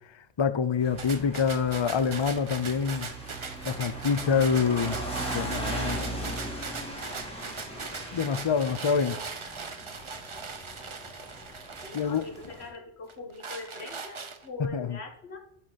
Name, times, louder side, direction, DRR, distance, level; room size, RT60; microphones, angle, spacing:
voice 1, 0.4-3.1 3.6-5.0 5.3-6.0 8.1-9.2 11.9-12.2 14.6-15.0, left 6 dB, 45° left, 0.3 m, -26 dB
sound 1, 0.8-12.7, right 1 dB, 5° left, 2.5 m, -38 dB
sound 2, 1.0-12.6 13.1-14.7, right 4 dB, 35° right, 0.6 m, -40 dB
voice 2, 4.5-6.1 11.8-15.4, left 3 dB, 70° left, 1.7 m, -42 dB
11.5 x 5.8 x 4.1 m
omnidirectional pair, 1.1 m